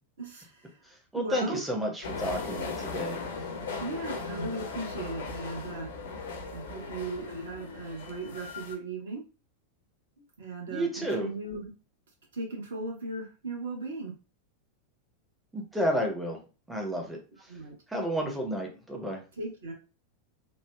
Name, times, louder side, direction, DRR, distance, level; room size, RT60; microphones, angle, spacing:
voice 1, 0.2-0.8 1.1-1.6 3.8-5.9 6.5-9.2 10.2-11.7 12.3-14.1 17.5-17.7 19.4-19.7, right 2 dB, 65° right, 1 dB, 0.9 m, -37 dB
voice 2, 0.8-3.2 10.7-11.3 15.5-16.4 16.7-17.6 17.9-19.2, equal, 5° right, 1 dB, 0.6 m, -31 dB
sound 1, 2.0-8.8, left 4 dB, 60° left, 0.5 m, -38 dB
3.1 x 2.0 x 2.3 m, 0.33 s
figure-of-eight pair, 90°, 0 cm